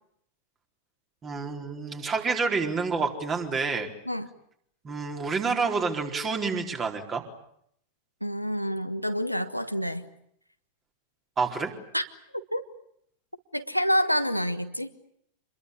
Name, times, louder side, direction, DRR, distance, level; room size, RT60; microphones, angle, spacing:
voice 1, 1.2-3.9 4.8-7.3 11.4-11.8, right 4 dB, 25° right, 3 dB, 4.2 m, -28 dB
voice 2, 8.2-10.1 11.9-12.0 12.5-12.6 13.5-14.9, equal, 90° left, 9 dB, 1.4 m, -27 dB
27.5 x 22.0 x 8.5 m, 0.71 s
figure-of-eight pair, 90°, 0 cm